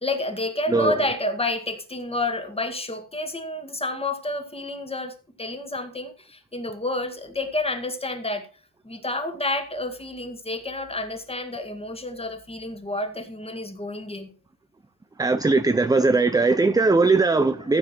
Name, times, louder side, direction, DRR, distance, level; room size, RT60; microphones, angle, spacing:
voice 1, 0.0-8.5 8.8-14.3 17.6-17.8, left 2 dB, 15° left, 2.0 m, -29 dB
voice 2, 15.2-17.8, right 3 dB, 10° right, 0.6 m, -19 dB
14.5 x 7.4 x 4.5 m
cardioid pair, 120°, 40 cm